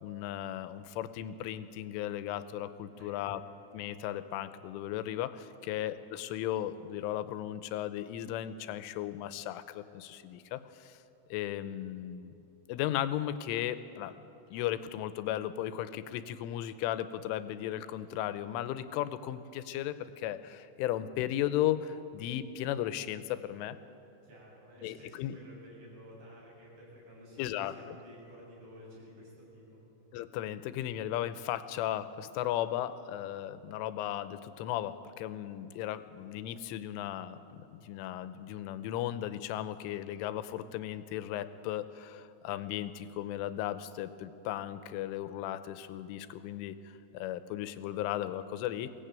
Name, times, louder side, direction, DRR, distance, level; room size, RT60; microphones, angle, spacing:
voice 1, 0.0-3.4 3.7-11.0 11.3-12.3 12.7-14.2 14.5-23.8 24.8-25.3 27.4-28.0 30.1-48.9, left 12 dB, 85° left, 12 dB, 3.3 m, -36 dB
voice 2, 2.9-3.4 5.7-5.8 24.2-29.9, equal, 65° right, -4 dB, 9.5 m, -52 dB
22.5 x 17.5 x 9.0 m, 2.8 s
omnidirectional pair, 5.5 m